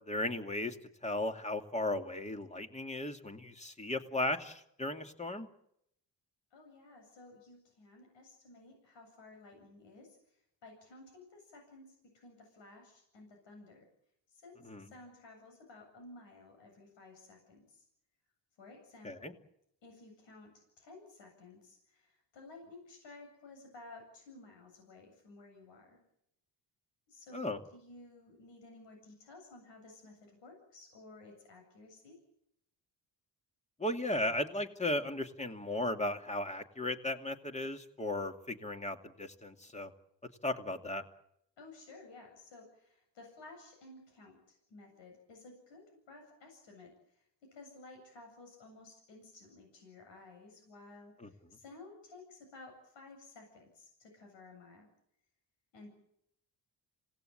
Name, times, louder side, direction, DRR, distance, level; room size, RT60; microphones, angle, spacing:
voice 1, 0.1-0.8 1.0-5.5 14.7-14.8 19.0-19.3 27.3-27.6 33.8-39.9 40.4-41.0 51.2-51.3, left 1 dB, 15° left, 6 dB, 2.5 m, -36 dB
voice 2, 6.5-13.9 14.3-17.8 18.6-19.3 19.8-26.0 27.1-32.2 41.6-54.9 55.7-55.9, left 2 dB, 85° left, 3 dB, 7.8 m, -55 dB
26.5 x 18.5 x 8.8 m, 0.76 s
cardioid pair, 90°, 43 cm